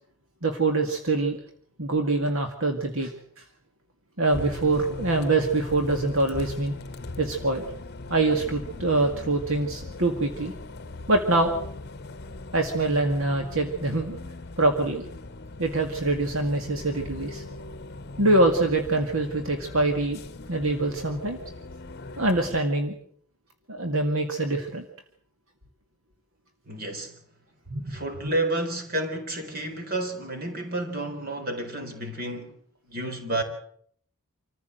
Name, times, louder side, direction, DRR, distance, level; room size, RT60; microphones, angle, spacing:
voice 1, 0.4-1.4 1.8-3.1 4.2-6.8 7.2-7.6 8.1-10.5 11.1-11.5 12.5-14.2 14.6-15.1 15.6-17.4 18.2-20.2 20.5-21.4 22.2-23.0 23.7-24.9 27.7-28.3, right 2 dB, 65° right, 2.1 m, -24 dB
Bus, 4.3-22.6, left 2 dB, 45° left, 1.0 m, -39 dB
voice 2, 26.7-27.1 27.9-32.5 32.9-33.4, right 1 dB, 40° right, 4.1 m, -30 dB
27.0 x 15.0 x 7.8 m
head